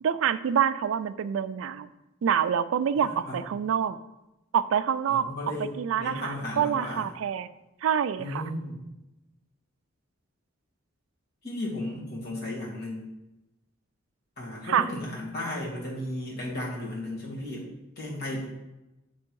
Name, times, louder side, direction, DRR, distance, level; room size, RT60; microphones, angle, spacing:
voice 1, 0.0-1.9 2.2-4.0 4.5-5.3 5.8-7.5 7.8-8.5 14.7-14.9, right 8 dB, 80° right, 14 dB, 0.3 m, -26 dB
voice 2, 3.0-3.4 5.1-7.0 8.2-8.8 11.4-13.1 14.4-17.7 18.0-18.5, left 1 dB, 55° left, -5 dB, 2.0 m, -35 dB
7.5 x 3.5 x 4.5 m, 0.97 s
head